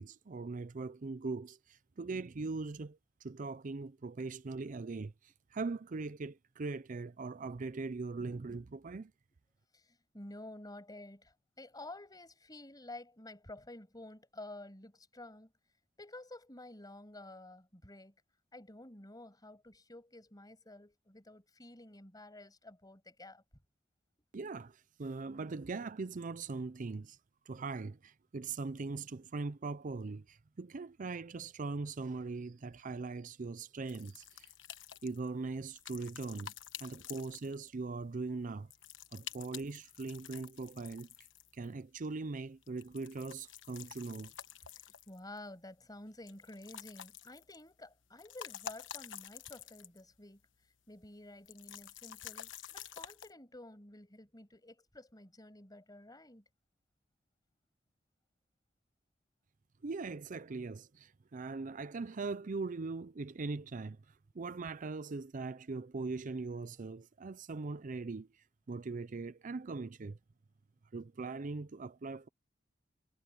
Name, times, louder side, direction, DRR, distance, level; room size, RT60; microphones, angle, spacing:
voice 1, 0.0-9.1 24.3-27.2 27.5-34.5 35.0-36.5 36.8-38.7 39.1-41.1 41.5-44.3 59.8-64.0 64.3-68.3 68.7-70.2 70.9-72.3, right 3 dB, 45° right, 0.5 m, -40 dB
voice 2, 9.7-15.5 16.0-18.1 18.5-23.4 36.9-37.2 39.3-39.4 44.7-50.4 50.9-56.4, left 1 dB, 20° left, 6.5 m, -51 dB
sound 1, 33.9-37.9 38.7-41.7 42.6-45.4 46.3-47.7 48.0-50.1 50.4-50.5 51.5-53.3, left 9 dB, 85° left, 1.2 m, -49 dB
head